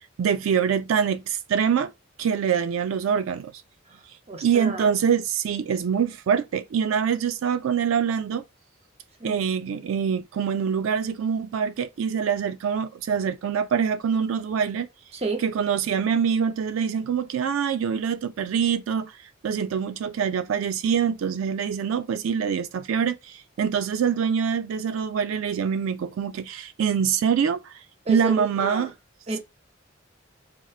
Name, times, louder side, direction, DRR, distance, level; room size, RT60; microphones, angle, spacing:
voice 1, 0.0-1.9 2.2-3.5 4.4-8.4 9.2-14.9 15.4-19.1 19.4-27.7 28.1-28.9, right 7 dB, 75° right, 0.3 m, -25 dB
voice 2, 3.9-4.9 9.2-9.4 15.1-15.4 28.1-28.9 29.3-29.4, right 3 dB, 30° right, 0.6 m, -31 dB
4.2 x 2.0 x 2.3 m
head